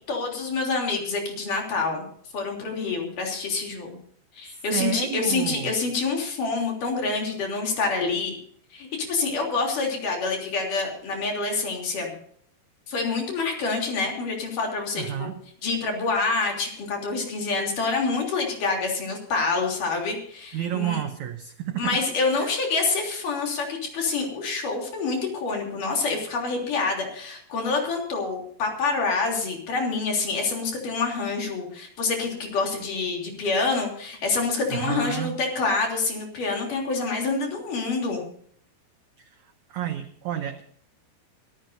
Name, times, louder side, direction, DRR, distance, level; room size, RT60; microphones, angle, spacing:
voice 1, 0.1-2.1 2.3-4.0 4.3-8.3 8.7-12.1 12.9-15.3 15.6-21.0 21.8-38.2, left 4 dB, 55° left, 1 dB, 4.8 m, -27 dB
voice 2, 4.4-5.8 15.0-15.4 20.5-22.0 22.3-22.5 34.7-35.4 39.2-40.6, right 11 dB, 80° right, 8 dB, 1.7 m, -31 dB
24.5 x 13.5 x 2.7 m, 0.62 s
omnidirectional pair, 4.5 m